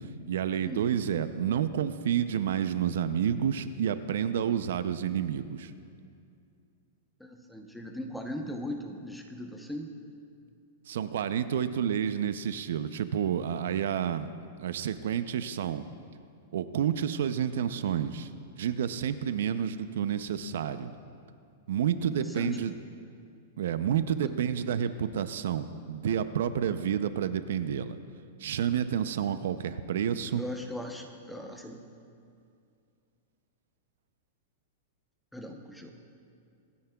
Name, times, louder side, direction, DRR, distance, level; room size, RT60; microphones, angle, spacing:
voice 1, 0.3-5.7 10.9-14.3 14.6-15.8 16.5-18.3 18.6-20.9 21.7-22.7 23.6-28.0 28.4-30.4, right 9 dB, 75° right, 12 dB, 0.5 m, -29 dB
voice 2, 7.2-9.9 22.1-22.6 24.2-24.3 30.2-31.8 35.3-35.9, left 1 dB, ahead, 3 dB, 0.8 m, -39 dB
24.5 x 9.5 x 2.3 m, 2.4 s
supercardioid pair, 155°, 0 cm